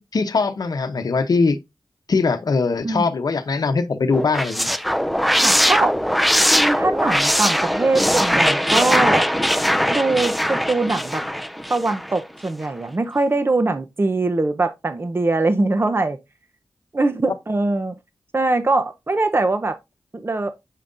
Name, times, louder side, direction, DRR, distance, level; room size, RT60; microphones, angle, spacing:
voice 1, 0.0-1.6 2.1-4.7, left 4 dB, 65° left, 0.8 m, -21 dB
sound 1, 4.1-12.2, equal, ahead, 0.4 m, -20 dB
voice 2, 5.4-5.9 6.5-9.2 9.9-11.2 11.7-16.2 16.9-17.9 18.3-19.8 20.1-20.5, right 2 dB, 30° right, 0.7 m, -22 dB
7.4 x 5.2 x 2.6 m
cardioid pair, 55°, 7 cm